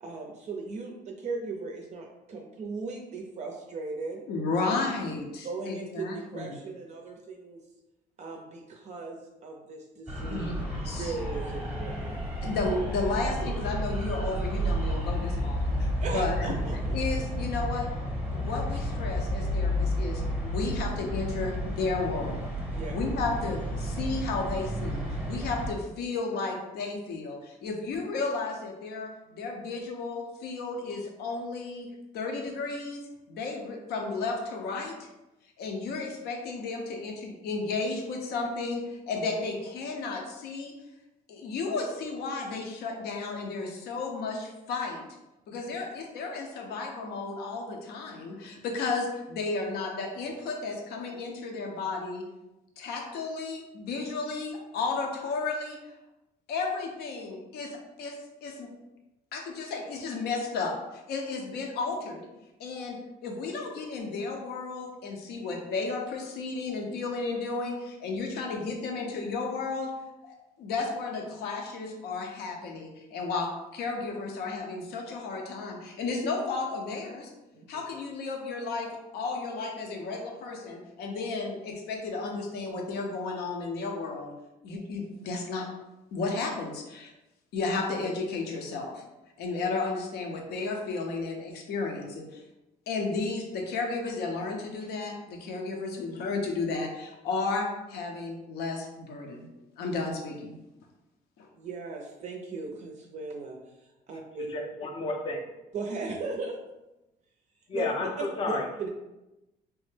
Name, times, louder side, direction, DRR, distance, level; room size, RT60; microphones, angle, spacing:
voice 1, 0.0-4.2 5.4-7.6 8.2-10.4 11.0-12.2 16.0-17.0 22.7-23.1 45.5-45.8 77.5-77.8 101.6-104.5 105.7-106.6 107.7-107.9 108.2-108.9, right 3 dB, 45° right, 1 dB, 0.4 m, -37 dB
voice 2, 4.3-6.6 10.3-11.1 12.4-16.5 16.9-17.9 18.3-22.5 22.9-35.1 35.6-40.8 41.3-45.0 45.5-52.3 52.8-56.0 56.5-58.7 59.3-62.3 62.6-69.9 70.2-77.3 77.7-84.3 84.6-85.7 86.1-87.1 87.5-89.0 89.4-92.4 92.9-99.5 99.8-100.6 101.4-101.5, left 3 dB, 70° left, 2 dB, 0.6 m, -33 dB
sound 1, 10.1-25.7, equal, 5° right, 0.8 m, -31 dB
voice 3, 104.4-105.4 107.7-108.7, left 2 dB, 30° left, 2 dB, 0.5 m, -32 dB
3.3 x 2.0 x 3.2 m, 0.99 s
cardioid pair, 110°, 17 cm